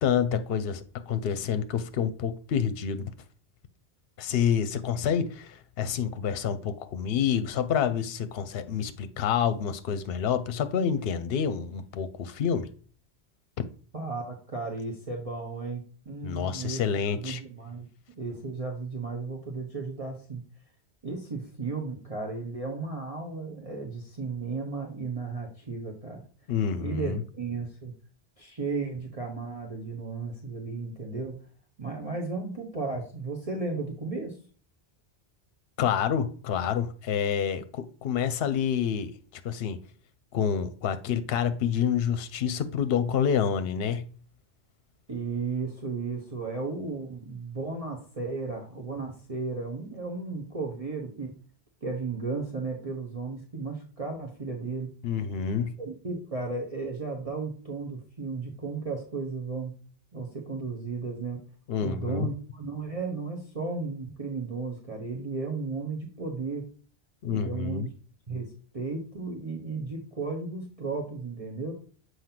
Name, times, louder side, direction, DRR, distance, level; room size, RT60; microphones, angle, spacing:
voice 1, 0.0-3.1 4.2-12.7 16.2-17.4 26.5-27.2 35.8-39.1 39.4-39.8 40.3-44.1 55.0-55.7 61.7-62.3 67.2-67.9, left 7 dB, 70° left, 0.8 m, -28 dB
voice 2, 13.9-16.8 17.2-17.9 18.2-20.4 21.0-26.2 26.8-27.9 28.4-31.4 31.8-34.4 45.1-51.3 51.8-55.0 55.8-59.8 60.1-61.4 61.8-66.7 67.3-67.9 68.3-71.7, right 4 dB, 35° right, 1.1 m, -34 dB
7.3 x 2.8 x 5.8 m
omnidirectional pair, 1.1 m